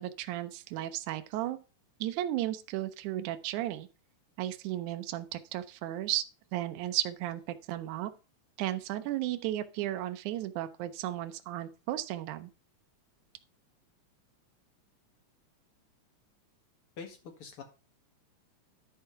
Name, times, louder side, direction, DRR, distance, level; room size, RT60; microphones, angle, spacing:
voice 1, 0.0-1.6 2.0-3.9 4.4-6.3 6.5-8.1 8.6-12.5, right 14 dB, 80° right, 9 dB, 2.1 m, -34 dB
voice 2, 17.0-17.6, left 5 dB, 50° left, 5 dB, 2.3 m, -44 dB
11.5 x 4.5 x 5.6 m, 0.32 s
omnidirectional pair, 3.5 m